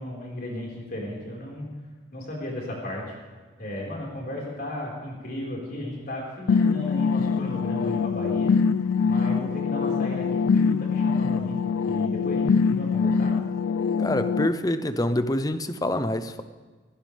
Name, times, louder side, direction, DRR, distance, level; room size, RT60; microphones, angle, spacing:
voice 1, 0.0-1.6 2.1-3.0 3.6-8.5 9.0-13.3, left 1 dB, 45° left, -3 dB, 4.9 m, -34 dB
sound 1, 6.5-14.5, left 5 dB, 80° left, 0.4 m, -24 dB
voice 2, 14.0-16.4, left 1 dB, 20° left, 10 dB, 0.7 m, -26 dB
18.5 x 16.0 x 3.5 m, 1.4 s
head